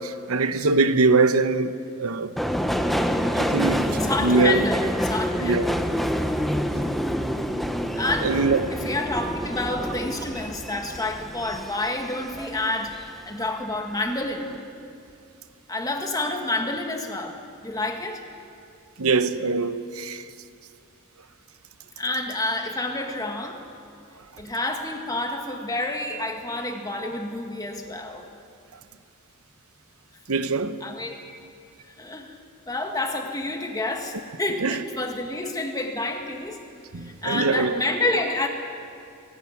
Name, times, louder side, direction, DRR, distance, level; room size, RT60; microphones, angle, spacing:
voice 1, 0.0-2.3 3.1-4.6 5.4-5.7 8.2-8.6 19.0-20.2 30.3-30.8 34.6-34.8 36.9-37.8, right 3 dB, 80° right, 0.9 m, -23 dB
Subway metro underground, 2.4-13.1 13.4-14.2 14.4-14.6, equal, ahead, 0.9 m, -27 dB
voice 2, 4.0-5.8 8.0-8.3 8.7-13.0 13.2-14.5 15.7-18.3 22.0-23.7 24.4-28.3 30.8-31.2 32.0-32.4 32.7-36.6 37.0-38.5, left 2 dB, 15° left, 2.0 m, -29 dB
18.5 x 17.0 x 9.9 m
head